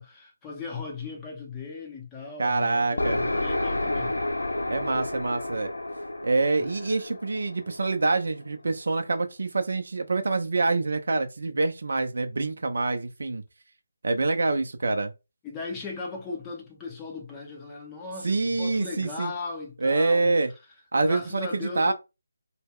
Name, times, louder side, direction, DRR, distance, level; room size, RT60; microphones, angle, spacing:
voice 1, 0.0-4.2 6.6-6.7 15.4-20.3 21.0-21.9, left 4 dB, 15° left, 0.6 m, -37 dB
voice 2, 2.4-3.2 4.7-5.7 6.2-13.4 14.0-15.1 18.2-19.3 19.8-20.5 20.9-21.9, right 3 dB, 60° right, 0.4 m, -26 dB
sound 1, 3.0-8.6, left 1 dB, 80° left, 0.4 m, -30 dB
2.2 x 2.0 x 3.5 m
figure-of-eight pair, 155°, 0 cm